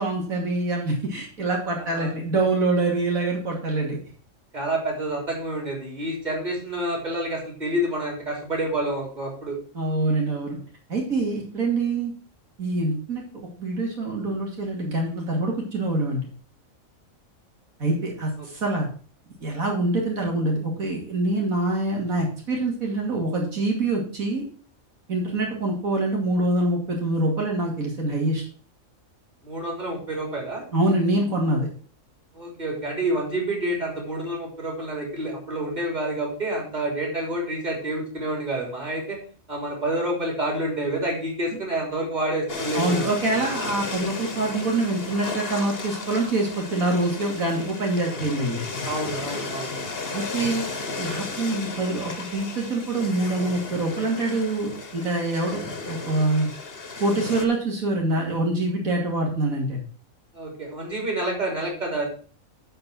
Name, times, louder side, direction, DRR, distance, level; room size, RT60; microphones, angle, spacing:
voice 1, 0.0-4.0 9.7-10.6 10.9-12.1 12.6-13.2 13.6-16.2 17.8-18.9 19.4-24.4 25.1-28.4 30.7-31.7 42.7-48.6 50.1-50.6 51.0-56.5 57.0-59.8, right 2 dB, 85° right, -1 dB, 3.0 m, -25 dB
voice 2, 1.8-2.1 4.5-9.5 29.4-30.6 32.3-39.2 39.5-43.1 48.8-49.7 60.3-62.1, right 1 dB, 30° right, -1 dB, 3.7 m, -28 dB
sound 1, 42.5-57.5, left 3 dB, 45° left, 1.5 m, -34 dB
12.0 x 4.6 x 6.0 m, 0.41 s
omnidirectional pair, 1.4 m